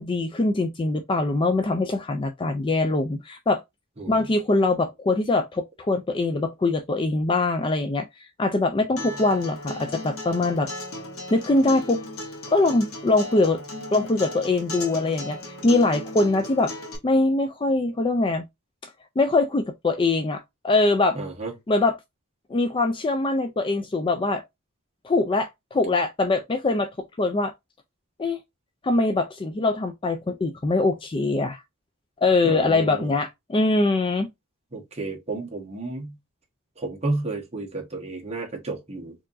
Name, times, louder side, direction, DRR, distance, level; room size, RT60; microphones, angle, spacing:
voice 1, 0.0-3.6 4.1-8.1 8.4-10.7 11.3-12.0 12.5-13.6 13.9-15.4 15.6-16.7 17.0-18.4 19.2-21.2 21.7-21.9 22.5-24.4 25.0-26.9 27.2-27.5 28.2-28.4 28.8-31.6 32.2-34.3, left 2 dB, 25° left, 0.4 m, -23 dB
Acoustic guitar, 9.0-17.0, left 1 dB, 75° left, 1.3 m, -36 dB
voice 2, 21.1-21.5 32.4-33.1 34.7-36.1 36.8-39.1, right 2 dB, 30° right, 1.3 m, -31 dB
4.4 x 2.9 x 2.5 m
head